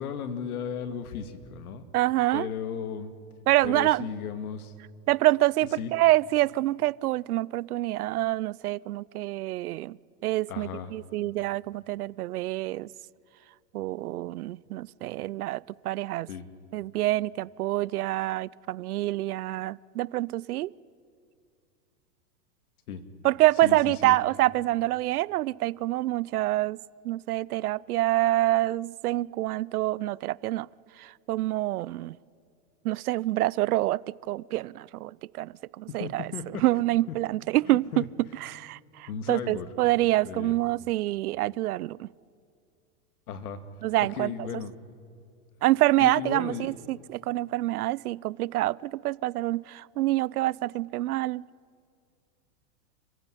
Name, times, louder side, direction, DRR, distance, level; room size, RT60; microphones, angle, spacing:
voice 1, 0.0-1.8 2.3-3.1 3.6-4.7 5.8-5.9 10.5-10.9 16.3-16.5 22.9-23.0 23.6-24.2 36.0-36.6 37.7-38.1 39.1-39.7 40.2-40.6 43.3-43.6 44.0-44.7 46.0-46.7, left 7 dB, 80° left, 10 dB, 2.2 m, -35 dB
voice 2, 1.9-2.5 3.5-4.1 5.1-10.0 10.2-12.9 13.7-16.3 16.7-20.7 23.2-26.8 27.0-30.7 31.0-32.2 32.8-36.3 36.6-37.9 38.4-42.1 43.8-44.3 45.6-51.4, right 16 dB, 85° right, 24 dB, 0.6 m, -26 dB
27.0 x 15.5 x 9.9 m, 2.3 s
hypercardioid pair, 125°, 43 cm